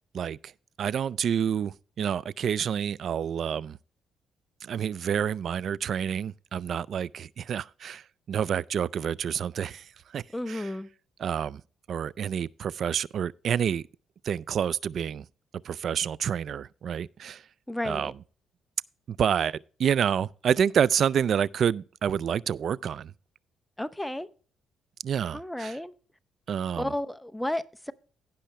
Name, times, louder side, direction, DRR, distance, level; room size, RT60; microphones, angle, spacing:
voice 1, 0.1-0.5 0.8-3.8 4.6-10.7 11.2-11.6 11.9-13.8 14.2-15.3 15.6-17.4 17.8-18.1 19.1-23.1 25.0-25.8 26.5-26.9, right 8 dB, 60° right, 0.3 m, -28 dB
voice 2, 10.3-10.9 17.7-18.1 23.8-24.3 25.3-25.9 26.8-27.9, left 1 dB, 5° left, 0.7 m, -32 dB
16.5 x 5.7 x 3.2 m
cardioid pair, 90°, 0 cm